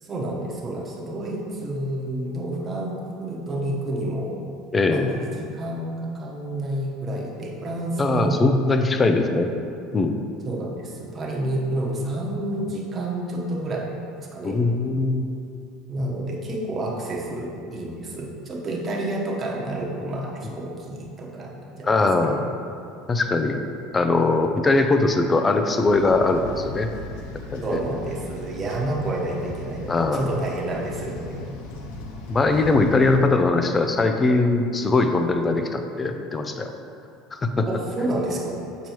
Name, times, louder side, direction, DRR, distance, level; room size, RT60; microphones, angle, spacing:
voice 1, 0.0-4.3 4.9-5.9 6.1-8.4 10.4-13.8 14.3-14.6 15.9-22.3 27.6-31.4 37.7-38.6, right 1 dB, 30° right, -3 dB, 1.1 m, -29 dB
voice 2, 4.7-5.2 8.0-9.5 9.9-10.2 14.4-15.2 20.4-20.5 21.8-22.5 23.1-23.6 23.9-26.9 27.5-27.8 29.9-30.4 32.3-36.7 37.3-37.7, left 3 dB, 20° left, 6 dB, 0.5 m, -21 dB
sound 1, 25.8-33.2, left 2 dB, 75° left, 0.7 m, -37 dB
7.1 x 4.4 x 3.1 m, 2.5 s
supercardioid pair, 105°, 0 cm